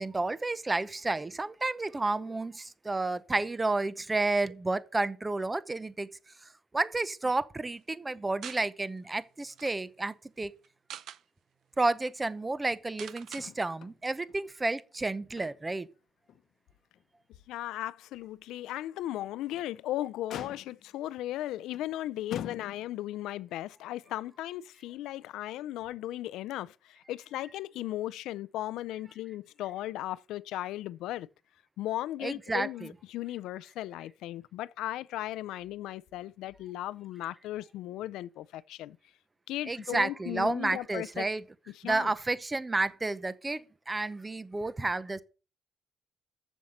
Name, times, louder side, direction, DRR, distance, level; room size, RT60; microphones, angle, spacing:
voice 1, 0.0-6.1 6.4-10.5 11.8-15.9 32.2-32.9 39.7-41.4 41.8-45.2, right 2 dB, 20° right, 0.8 m, -31 dB
sound 1, 8.4-8.7 9.1-9.2 9.5-9.7 10.6-11.2 11.8-11.9 12.1-12.3 13.0-13.5, right 10 dB, 75° right, 0.6 m, -44 dB
Motor vehicle (road), 13.3-14.0 14.3-14.4 14.9-15.9 16.3-16.4 17.0-17.1 19.3-19.7 20.3-21.0 21.7-21.9 22.3-23.1 24.2-24.3, left 10 dB, 75° left, 0.8 m, -43 dB
voice 2, 17.5-31.3 31.8-39.0 39.5-41.3 41.8-42.1, left 14 dB, 90° left, 0.4 m, -36 dB
7.2 x 7.1 x 6.5 m
cardioid pair, 90°, 0 cm